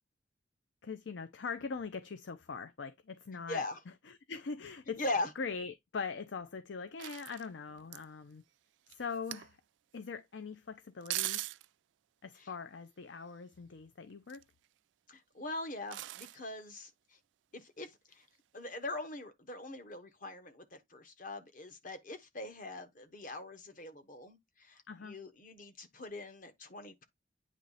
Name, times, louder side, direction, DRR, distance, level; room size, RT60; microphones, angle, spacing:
voice 1, 0.8-3.7 4.1-5.0 5.4-8.4 8.9-9.6 9.9-11.4 12.2-14.4 24.9-25.1, left 5 dB, 75° left, 0.6 m, -42 dB
voice 2, 3.5-3.8 5.0-5.3 12.4-12.5 15.1-16.9 17.5-18.3 18.5-27.0, left 2 dB, 50° left, 1.2 m, -41 dB
sound 1, 7.0-8.0 8.9-9.5 11.0-11.7 14.1-14.7 15.9-16.4 17.9-18.0, right 17 dB, 75° right, 0.3 m, -40 dB
9.0 x 3.1 x 4.0 m
head